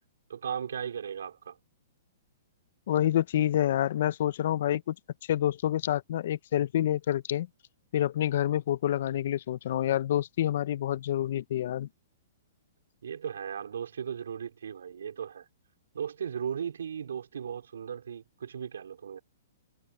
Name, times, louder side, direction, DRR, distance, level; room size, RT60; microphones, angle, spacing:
voice 1, 0.3-1.6 13.0-15.5 15.9-19.2, right 8 dB, 85° right, 3.4 m, -36 dB
voice 2, 2.9-4.9 5.3-7.5 7.9-11.9, left 11 dB, 60° left, 0.5 m, -27 dB
hypercardioid pair, 150°, 0 cm